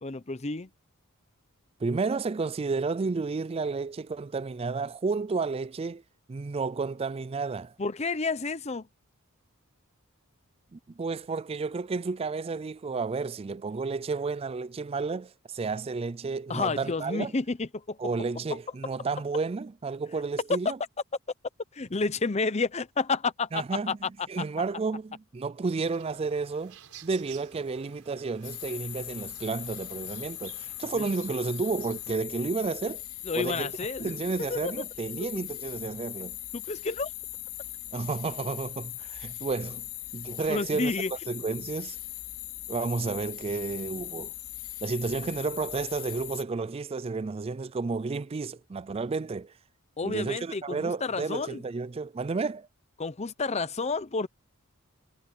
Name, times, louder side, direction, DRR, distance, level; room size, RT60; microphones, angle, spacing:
voice 1, 0.0-0.7 7.8-8.9 16.5-18.0 21.7-23.9 33.2-34.1 34.5-34.7 36.5-37.1 40.5-41.1 50.0-51.6 53.0-54.3, left 4 dB, 30° left, 0.7 m, -30 dB
voice 2, 1.8-6.0 6.3-7.7 10.7-17.4 18.0-20.8 23.5-33.0 33.4-36.4 37.9-39.9 40.1-40.9 41.3-42.0 42.7-44.3 44.8-49.5 50.0-52.7, right 4 dB, 25° right, 0.3 m, -31 dB
sound 1, 25.7-32.1, right 8 dB, 90° right, 4.4 m, -53 dB
sound 2, 28.4-46.4, left 15 dB, 75° left, 3.6 m, -40 dB
head